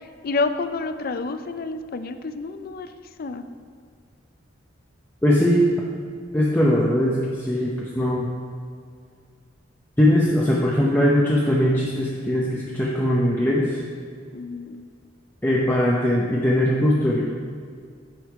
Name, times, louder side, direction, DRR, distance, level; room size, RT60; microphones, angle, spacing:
voice 1, 0.0-2.9 3.2-3.4 14.3-14.8, left 3 dB, 50° left, 10 dB, 0.4 m, -29 dB
voice 2, 5.2-5.7 6.3-8.3 10.0-13.8 15.4-17.2, equal, 10° left, -5 dB, 0.7 m, -20 dB
9.2 x 5.6 x 4.6 m, 2.1 s
head